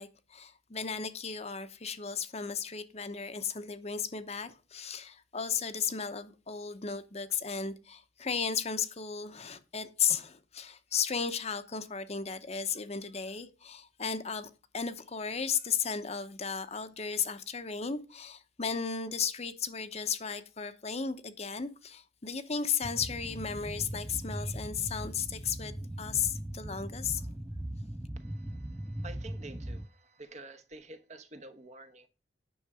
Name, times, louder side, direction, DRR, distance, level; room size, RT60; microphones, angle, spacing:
voice 1, 0.0-27.3, left 6 dB, 40° left, 0.9 m, -35 dB
sound 1, 22.8-29.9, right 1 dB, 10° right, 0.4 m, -39 dB
voice 2, 28.2-32.1, right 2 dB, 40° right, 1.1 m, -49 dB
9.4 x 6.6 x 4.9 m
head